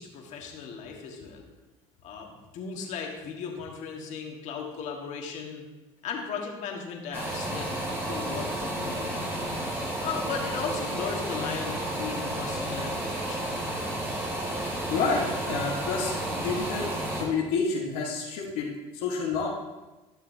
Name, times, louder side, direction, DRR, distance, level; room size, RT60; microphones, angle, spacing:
voice 1, 0.0-1.4 2.0-5.6 6.0-9.3 10.0-13.9, left 6 dB, 60° left, 1 dB, 1.6 m, -37 dB
sound 1, 7.1-17.2, right 1 dB, 15° right, 2.6 m, -32 dB
voice 2, 14.9-19.5, left 4 dB, 80° left, -3 dB, 1.3 m, -29 dB
12.0 x 6.7 x 2.7 m, 1.1 s
supercardioid pair, 85°, 14 cm